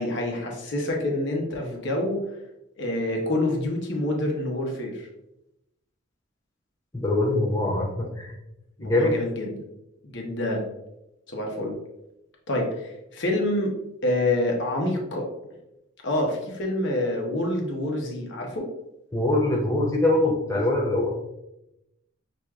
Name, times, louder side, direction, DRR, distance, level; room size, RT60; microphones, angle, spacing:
voice 1, 0.0-2.2 2.8-5.1 8.8-9.5 10.0-10.7 11.3-11.8 12.5-13.7 14.0-15.3 16.0-18.7, left 1 dB, 60° left, 0 dB, 0.9 m, -27 dB
voice 2, 6.9-8.4 8.8-9.2 19.1-21.1, left 1 dB, 15° left, -2 dB, 0.5 m, -23 dB
6.1 x 2.6 x 2.3 m, 0.89 s
head